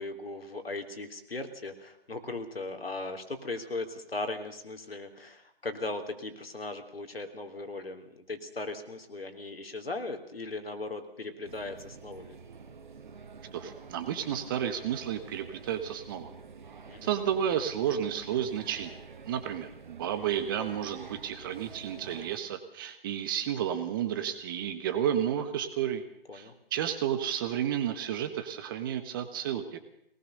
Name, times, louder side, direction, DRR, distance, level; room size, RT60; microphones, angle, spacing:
voice 1, 0.0-12.4 16.8-17.1 26.3-26.5, left 2 dB, 70° left, 6 dB, 3.5 m, -38 dB
sound 1, 11.4-22.4, right 5 dB, 50° right, 2.1 m, -48 dB
voice 2, 13.5-16.3 17.0-18.9 19.2-26.0 26.3-29.9, right 9 dB, 20° right, 9 dB, 1.3 m, -32 dB
22.5 x 19.0 x 6.7 m, 0.76 s
figure-of-eight pair, 145°, 30 cm